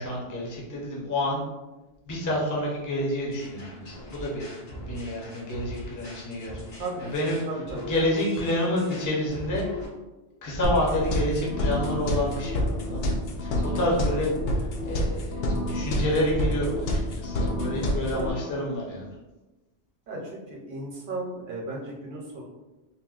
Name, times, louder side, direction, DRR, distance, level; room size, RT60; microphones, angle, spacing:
voice 1, 0.0-1.4 2.1-4.4 4.9-6.6 7.1-7.5 7.9-9.6 10.4-19.1, left 1 dB, 20° left, -4 dB, 0.5 m, -29 dB
sound 1, 3.3-9.9, equal, 85° left, 1.8 m, -41 dB
voice 2, 6.8-7.1 7.5-7.9 14.0-14.2 18.1-18.7 20.1-22.4, right 2 dB, 55° right, -2 dB, 0.8 m, -35 dB
sound 2, 10.6-18.3, left 1 dB, 65° left, 0.7 m, -28 dB
4.0 x 2.1 x 2.4 m, 1.1 s
omnidirectional pair, 1.1 m